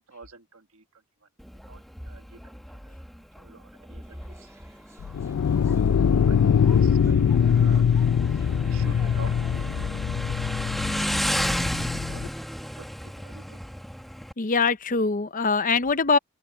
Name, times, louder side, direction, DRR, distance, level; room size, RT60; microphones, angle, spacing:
voice 1, 0.1-0.8 1.7-3.0 3.4-4.5 5.1-5.4 6.1-8.1 8.4-10.7 12.1-12.3 12.7-13.6, right 4 dB, 80° right, 1.6 m, -48 dB
Motorcycle, 1.4-14.3, equal, ahead, 1.3 m, -34 dB
sound 1, 4.0-10.0, right 1 dB, 15° right, 2.3 m, -52 dB
sound 2, 5.0-12.3, left 7 dB, 85° left, 0.4 m, -22 dB
voice 2, 14.4-16.2, left 4 dB, 40° left, 0.7 m, -23 dB
open air
head